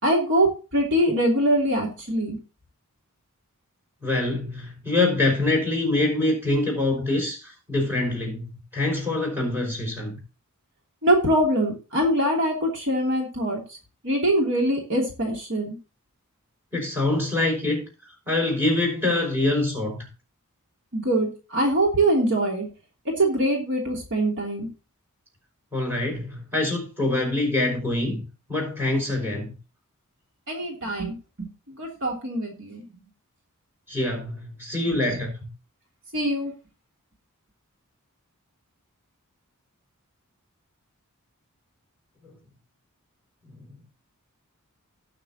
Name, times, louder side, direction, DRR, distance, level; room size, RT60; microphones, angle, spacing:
voice 1, 0.0-2.4 11.0-13.8 14.0-15.8 20.9-22.7 23.0-24.7 30.5-32.8 36.1-36.5, right 1 dB, 60° right, -1 dB, 2.9 m, -23 dB
voice 2, 4.0-10.2 16.7-17.8 18.3-20.1 25.7-29.5 33.9-35.5 42.2-42.3 43.5-43.7, left 2 dB, 10° right, 0 dB, 5.4 m, -25 dB
19.0 x 6.7 x 2.9 m, 0.32 s
head